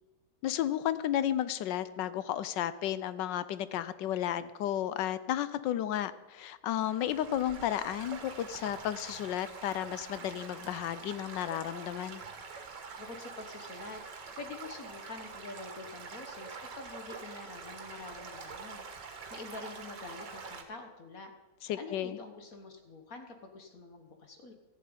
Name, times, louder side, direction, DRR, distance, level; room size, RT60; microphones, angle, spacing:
voice 1, 0.4-12.2 21.7-22.2, left 11 dB, 85° left, 15 dB, 1.4 m, -33 dB
Stream / Gurgling / Trickle dribble, 6.8-20.6, right 5 dB, 75° right, 2.1 m, -45 dB
voice 2, 13.0-18.8 19.3-21.3 21.7-24.5, left 3 dB, 55° left, 5 dB, 1.7 m, -46 dB
13.5 x 7.5 x 9.6 m, 1.2 s
omnidirectional pair, 1.9 m